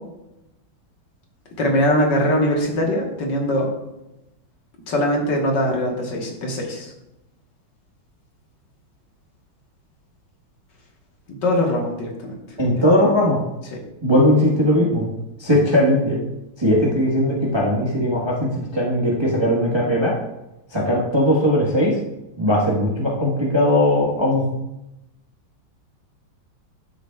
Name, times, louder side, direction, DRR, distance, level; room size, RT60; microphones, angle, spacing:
voice 1, 1.6-3.7 4.9-6.9 11.4-12.4 12.8-12.9, left 1 dB, 60° left, 0 dB, 1.9 m, -21 dB
voice 2, 12.6-13.4 14.0-15.1 15.4-16.2 16.6-20.1 20.7-22.0 22.4-24.4, left 1 dB, 20° right, -4 dB, 0.9 m, -19 dB
12.0 x 6.3 x 2.3 m, 0.91 s
omnidirectional pair, 2.2 m